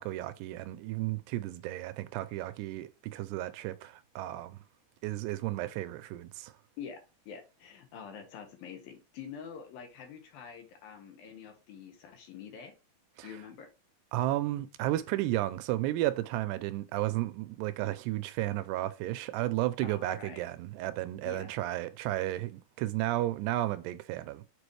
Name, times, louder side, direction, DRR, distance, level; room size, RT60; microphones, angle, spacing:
voice 1, 0.0-4.6 5.0-6.5 13.2-13.3 14.1-24.4, right 15 dB, 85° right, 2.6 m, -33 dB
voice 2, 7.3-12.7 13.2-13.7 19.8-20.4 21.2-21.6, left 7 dB, 65° left, 2.9 m, -46 dB
6.9 x 4.7 x 3.2 m
omnidirectional pair, 4.9 m